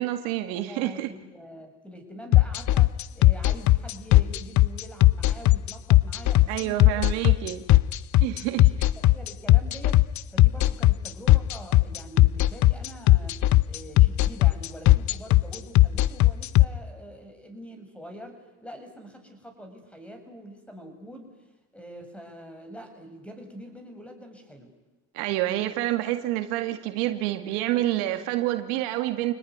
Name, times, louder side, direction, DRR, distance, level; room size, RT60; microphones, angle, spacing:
voice 1, 0.0-1.1 6.5-7.6 8.2-8.7 25.1-29.3, right 15 dB, 80° right, 7 dB, 2.2 m, -28 dB
voice 2, 0.5-7.1 8.5-13.3 13.7-21.3 21.7-24.7, equal, 5° left, 6 dB, 7.3 m, -44 dB
sound 1, 2.3-16.6, left 17 dB, 50° left, 0.8 m, -17 dB
27.5 x 19.0 x 9.6 m, 1.1 s
supercardioid pair, 85°, 37 cm